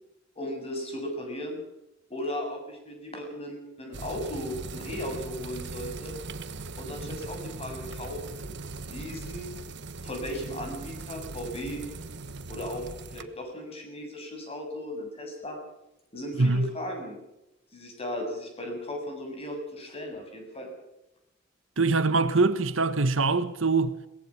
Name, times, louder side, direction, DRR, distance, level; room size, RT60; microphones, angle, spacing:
voice 1, 0.4-1.6 2.1-6.1 6.8-8.6 8.8-9.5 10.0-11.8 12.5-12.9 13.1-15.6 16.1-17.2 17.7-20.7, left 1 dB, 30° left, 7.4 m, -36 dB
sound 1, 3.9-13.2, right 3 dB, 60° right, 1.3 m, -40 dB
voice 2, 16.4-16.7 21.8-23.9, right 3 dB, 80° right, 1.4 m, -23 dB
22.5 x 19.0 x 6.0 m
head